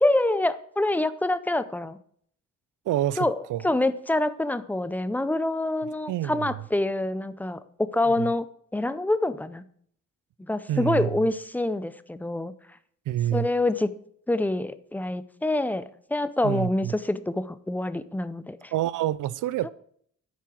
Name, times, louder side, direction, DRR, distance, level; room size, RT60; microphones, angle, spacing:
voice 1, 0.0-2.0 3.2-8.5 8.7-9.6 10.4-12.5 13.3-13.9 14.3-18.7, left 2 dB, 5° left, 0.5 m, -26 dB
voice 2, 2.9-3.6 6.1-6.5 8.1-8.3 10.7-11.1 13.1-13.5 16.4-16.9 18.7-19.7, right 13 dB, 75° right, 0.5 m, -27 dB
10.5 x 8.4 x 6.2 m
wide cardioid pair, 160°, 31 cm